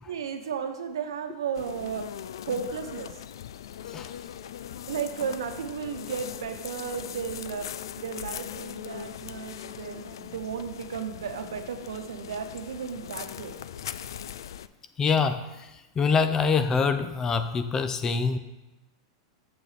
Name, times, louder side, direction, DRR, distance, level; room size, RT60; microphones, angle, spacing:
voice 1, 0.1-2.1 2.5-3.1 4.9-7.7 8.0-13.6, right 7 dB, 85° right, 7 dB, 1.0 m, -34 dB
sound 1, 1.5-14.7, left 10 dB, 80° left, 0.3 m, -40 dB
voice 2, 15.0-15.4 16.0-18.4, left 5 dB, 20° left, 9 dB, 0.6 m, -24 dB
8.1 x 7.0 x 4.2 m, 1.0 s
hypercardioid pair, 125°, 2 cm